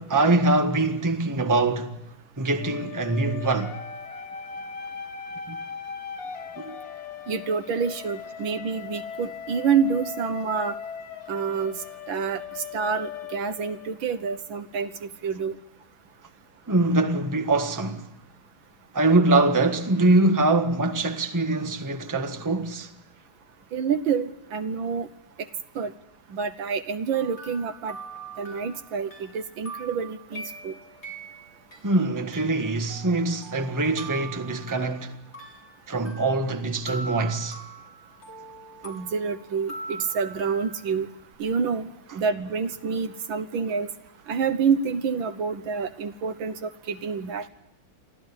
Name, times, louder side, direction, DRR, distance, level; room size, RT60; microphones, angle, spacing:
voice 1, 0.0-1.9 2.4-3.8 5.5-5.6 6.6-6.8 16.7-18.1 18.9-22.9 31.8-35.1 35.9-37.6, right 2 dB, 10° right, 1.3 m, -23 dB
sound 1, 2.6-14.4, left 6 dB, 85° left, 2.7 m, -39 dB
voice 2, 7.3-10.8 11.3-11.8 12.1-15.6 23.7-25.1 25.8-25.9 26.3-28.0 28.4-30.8 38.8-41.1 41.4-43.9 44.3-47.5, right 6 dB, 65° right, 1.8 m, -28 dB
sound 2, 27.1-31.8 32.3-36.6 36.9-41.3, right 3 dB, 30° left, 5.2 m, -42 dB
24.5 x 15.0 x 9.7 m
omnidirectional pair, 2.4 m